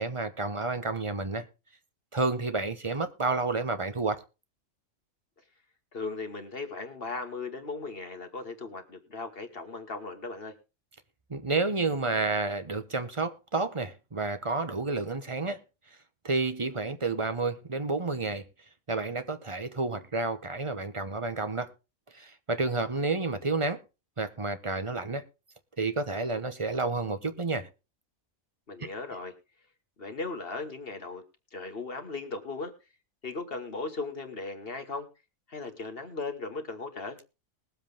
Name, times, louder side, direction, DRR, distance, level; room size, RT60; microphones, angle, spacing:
voice 1, 0.0-1.5 2.1-4.2 11.3-15.6 16.2-18.4 18.9-21.7 22.1-23.8 24.2-25.3 25.8-27.7 28.8-28.9, right 3 dB, 25° right, 1.0 m, -30 dB
voice 2, 5.9-10.5 28.7-29.3 30.0-31.2 31.5-32.7 33.2-35.1 35.5-37.2, left 3 dB, 45° left, 1.7 m, -37 dB
20.5 x 7.7 x 3.5 m
omnidirectional pair, 1.4 m